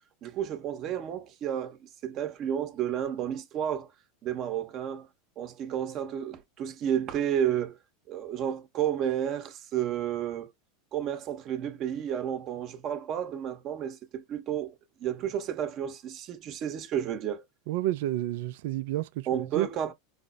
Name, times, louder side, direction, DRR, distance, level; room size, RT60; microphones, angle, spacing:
voice 1, 0.2-3.9 4.2-5.1 5.4-7.8 8.1-10.5 10.9-14.7 15.0-17.4 19.3-19.9, right 9 dB, 45° right, 0.8 m, -31 dB
voice 2, 17.7-19.7, right 14 dB, 70° right, 0.4 m, -30 dB
4.9 x 2.0 x 2.5 m
hypercardioid pair, 100°, 0 cm